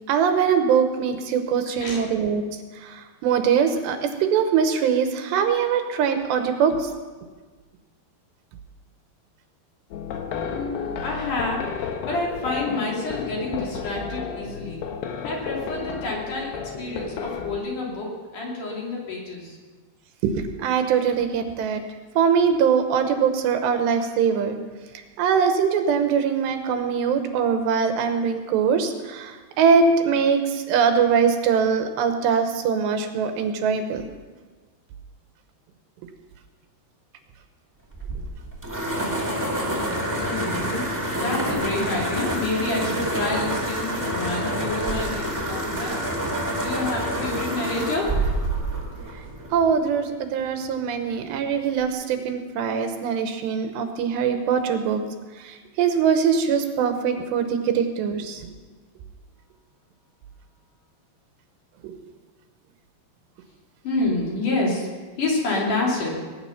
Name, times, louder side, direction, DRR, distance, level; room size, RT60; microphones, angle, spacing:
voice 1, 0.1-2.4 2.8-6.9 20.6-21.8 22.2-24.6 25.2-34.0 49.5-55.0 55.4-58.5 61.8-61.9, right 6 dB, 75° right, 6 dB, 3.1 m, -22 dB
sound 1, 9.9-17.6, left 7 dB, 70° left, 2.9 m, -32 dB
voice 2, 10.4-14.8 15.2-19.6 40.1-46.1 46.6-48.2 63.8-64.9 65.2-66.2, left 2 dB, 50° left, -3 dB, 4.0 m, -28 dB
sound 2, 37.9-49.7, right 1 dB, 10° right, 1.0 m, -27 dB
20.5 x 9.8 x 5.8 m, 1.4 s
omnidirectional pair, 5.2 m